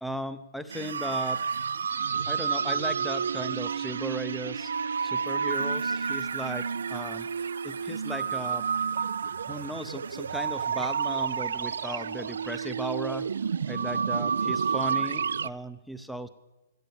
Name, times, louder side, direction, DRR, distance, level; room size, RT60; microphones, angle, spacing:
voice 1, 0.0-1.4 2.3-4.7 5.0-7.3 7.6-8.7 9.5-13.3 13.7-16.3, right 1 dB, ahead, 10 dB, 0.5 m, -36 dB
sound 1, 0.7-15.5, right 6 dB, 80° right, 0.3 m, -30 dB
12.0 x 9.3 x 6.9 m, 1.1 s
hypercardioid pair, 165°, 0 cm